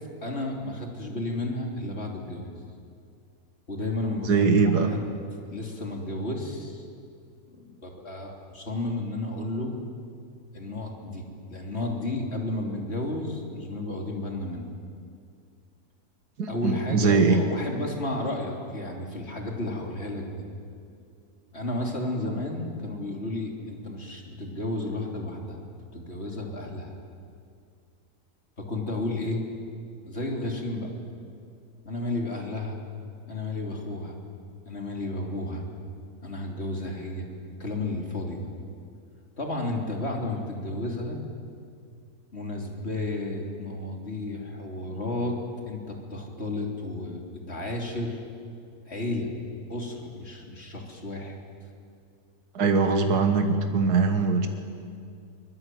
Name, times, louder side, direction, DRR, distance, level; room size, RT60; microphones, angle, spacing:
voice 1, 0.2-2.5 3.7-5.2 5.5-6.8 7.6-9.7 10.5-14.7 16.5-20.5 21.5-25.6 25.9-26.9 28.6-29.4 30.1-30.9 31.8-32.8 33.3-34.2 34.7-35.6 36.2-37.3 37.6-38.5 39.4-41.2 42.3-45.4 45.7-47.2 47.5-48.2 48.9-49.3 49.7-51.7, left 2 dB, 40° left, 1 dB, 3.6 m, -32 dB
voice 2, 4.2-4.9 16.4-17.4 52.5-54.5, right 4 dB, 85° right, 6 dB, 2.0 m, -22 dB
24.0 x 21.0 x 9.3 m, 2.3 s
omnidirectional pair, 1.7 m